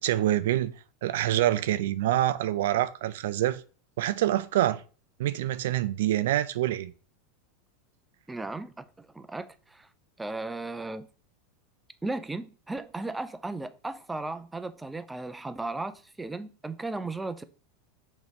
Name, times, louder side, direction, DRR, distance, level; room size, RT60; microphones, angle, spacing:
voice 1, 0.0-0.7 1.0-3.6 4.0-4.8 5.2-6.9, right 13 dB, 80° right, 0.5 m, -26 dB
voice 2, 8.3-9.9 10.2-11.1 12.0-17.4, right 2 dB, 10° right, 0.5 m, -36 dB
6.2 x 3.1 x 5.2 m
supercardioid pair, 135°, 0 cm